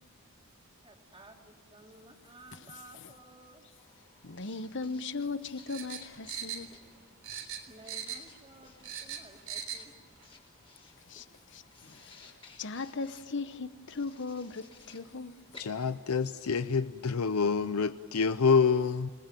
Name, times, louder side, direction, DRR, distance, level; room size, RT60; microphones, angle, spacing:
voice 1, 0.8-3.6 7.7-9.9 11.1-11.2 11.6-11.7, right 1 dB, 25° right, 3.1 m, -54 dB
Writing, 3.8-17.1, left 4 dB, 25° left, 3.9 m, -58 dB
voice 2, 4.2-6.8 11.1-15.4, left 4 dB, 55° left, 1.1 m, -38 dB
sound 1, 5.7-7.0 7.2-8.4 8.6-9.8 10.2-10.3, right 9 dB, 75° right, 3.4 m, -40 dB
voice 3, 15.6-19.1, left 5 dB, 85° left, 0.7 m, -27 dB
28.0 x 20.0 x 9.2 m
head